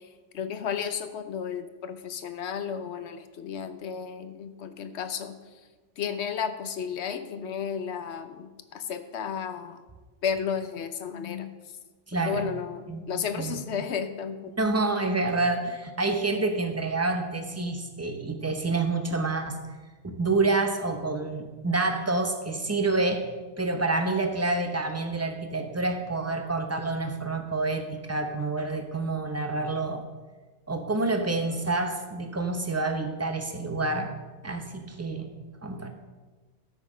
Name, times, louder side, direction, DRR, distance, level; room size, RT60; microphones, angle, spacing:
voice 1, 0.3-5.3 6.0-9.8 10.2-11.5 12.3-14.5, left 7 dB, 70° left, 10 dB, 1.0 m, -33 dB
voice 2, 12.1-12.5 12.9-13.1 13.3-13.6 14.6-19.6 20.0-23.3 23.6-30.0 30.7-34.1 34.4-35.3 35.6-35.9, right 3 dB, 15° right, 5 dB, 0.7 m, -28 dB
13.0 x 6.2 x 5.0 m, 1.3 s
omnidirectional pair, 1.2 m